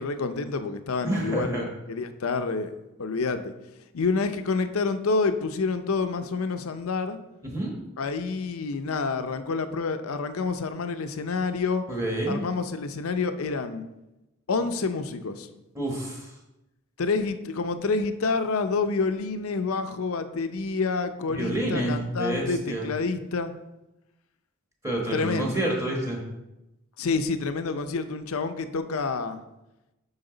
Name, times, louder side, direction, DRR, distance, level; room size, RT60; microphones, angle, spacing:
voice 1, 0.0-2.7 3.0-3.5 3.9-7.2 8.0-11.8 12.3-13.8 14.5-15.5 17.0-23.5 25.1-25.5 27.0-29.4, left 4 dB, 75° left, 9 dB, 0.6 m, -28 dB
voice 2, 1.0-1.7 7.4-7.7 11.9-12.4 15.7-16.3 21.3-22.9 24.8-26.2, right 1 dB, 15° right, -1 dB, 1.2 m, -28 dB
8.0 x 5.8 x 3.9 m, 0.97 s
head